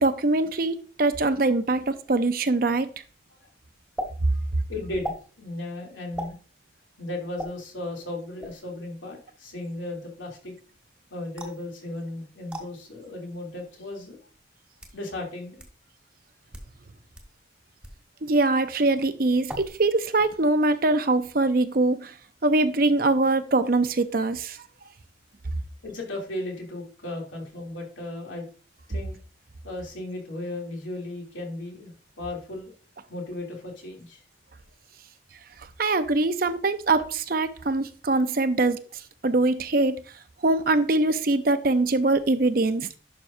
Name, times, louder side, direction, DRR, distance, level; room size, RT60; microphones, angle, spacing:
voice 1, 0.0-2.9 18.2-22.1 22.4-24.6 35.8-38.8 39.2-40.0 40.4-42.9, right 2 dB, 50° right, 0.7 m, -23 dB
sound 1, 4.0-4.1 5.0-5.2 6.2-6.4 7.4-7.5 8.4-8.7 11.4-11.6 12.5-12.6 13.6-13.7 14.5-15.0 15.6-15.7 16.4-16.7 17.1-17.3 17.8-18.0 19.5-19.9 20.2-20.6, right 1 dB, 5° right, 1.4 m, -36 dB
voice 2, 4.3-6.3 7.0-10.5 11.1-14.2 14.9-15.6 25.8-28.4 28.9-29.1 29.6-32.7 33.1-34.2, left 2 dB, 80° left, 2.9 m, -36 dB
11.5 x 6.1 x 2.7 m
head